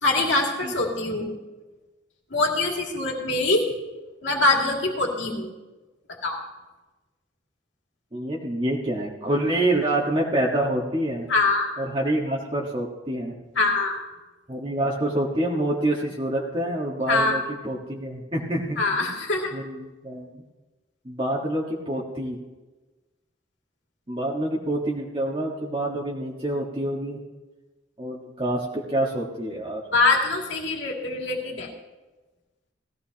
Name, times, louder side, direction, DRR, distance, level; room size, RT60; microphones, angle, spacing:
voice 1, 0.0-1.4 2.3-3.7 4.2-5.5 6.2-6.4 11.3-11.7 13.6-14.0 17.1-17.4 18.8-19.5 29.9-31.7, left 2 dB, 70° left, 0 dB, 2.3 m, -23 dB
voice 2, 8.1-11.3 11.8-13.3 14.5-18.8 19.5-20.3 21.0-22.4 24.1-27.2 28.0-29.8, right 1 dB, 30° right, -3 dB, 1.5 m, -27 dB
18.0 x 15.5 x 2.9 m, 1.2 s
head